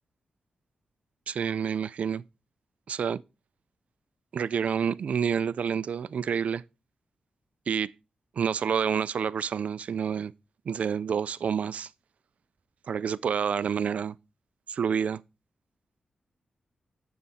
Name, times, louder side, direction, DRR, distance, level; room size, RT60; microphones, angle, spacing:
voice 1, 1.3-2.2 2.9-3.2 4.3-6.6 7.7-7.9 8.4-10.3 10.7-11.9 12.9-14.2 14.7-15.2, right 7 dB, 65° right, 0.4 m, -28 dB
9.4 x 6.6 x 4.1 m
wide cardioid pair, 115°, 2 cm